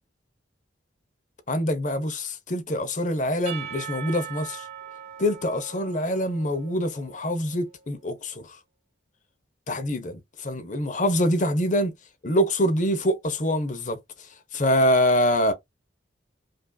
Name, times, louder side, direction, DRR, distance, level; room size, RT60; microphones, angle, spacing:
voice 1, 1.5-4.7 5.2-8.6 9.7-11.9 12.2-14.0 14.5-15.5, equal, 40° left, 0.8 m, -25 dB
Percussion / Church bell, 3.5-7.4, right 8 dB, 30° right, 0.9 m, -40 dB
5.1 x 2.6 x 2.2 m
head